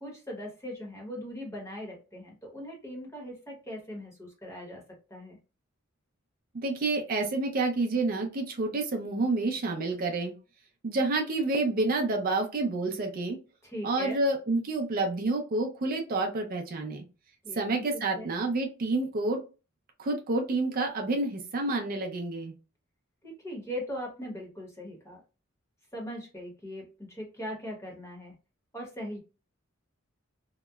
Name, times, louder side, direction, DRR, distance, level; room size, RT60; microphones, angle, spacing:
voice 1, 0.0-4.8 5.1-5.4 13.6-14.2 17.4-17.7 18.1-18.3 23.2-25.2 25.9-28.3 28.7-29.2, equal, 15° left, -1 dB, 0.9 m, -40 dB
voice 2, 6.5-10.3 10.8-13.4 13.8-17.0 17.5-19.4 20.0-22.5, right 2 dB, 45° right, 3 dB, 0.5 m, -29 dB
2.8 x 2.1 x 2.2 m, 0.31 s
head